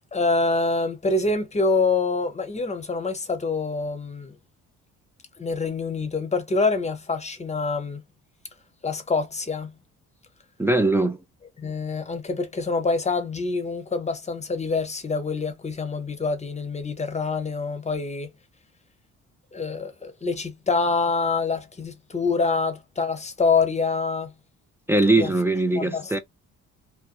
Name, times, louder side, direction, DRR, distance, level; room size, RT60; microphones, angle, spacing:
voice 1, 0.1-4.4 5.4-8.0 8.8-9.7 11.6-18.3 19.5-24.3 25.2-25.3 25.7-26.2, left 4 dB, 25° left, 0.7 m, -26 dB
voice 2, 10.6-11.2 24.9-26.2, right 2 dB, 10° right, 0.3 m, -21 dB
2.6 x 2.1 x 2.4 m
cardioid pair, 90°, 30 cm